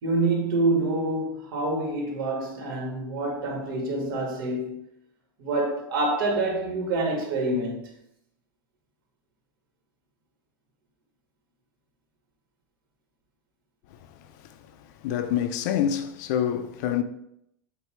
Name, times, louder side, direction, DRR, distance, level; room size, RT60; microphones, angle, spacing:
voice 1, 0.0-4.8 5.4-7.9, right 2 dB, 85° right, 2.3 m, -27 dB
voice 2, 15.0-17.0, left 9 dB, 55° left, 0.5 m, -26 dB
8.2 x 2.8 x 4.6 m
supercardioid pair, 160°, 11 cm